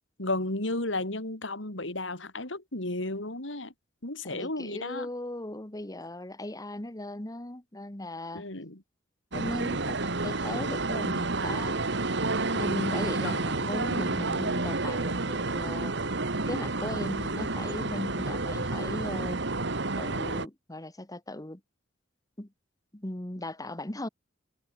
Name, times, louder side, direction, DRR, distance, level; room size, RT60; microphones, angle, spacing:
voice 1, 0.2-3.7 4.0-5.1 8.3-8.8 13.2-13.4, left 2 dB, 75° left, 4.5 m, -33 dB
voice 2, 4.2-8.4 9.3-11.8 12.5-15.9 16.5-19.4 20.0-21.6 22.4-22.5 22.9-24.1, left 1 dB, 20° left, 1.7 m, -38 dB
sound 1, 9.3-20.5, right 3 dB, 65° right, 2.1 m, -30 dB
head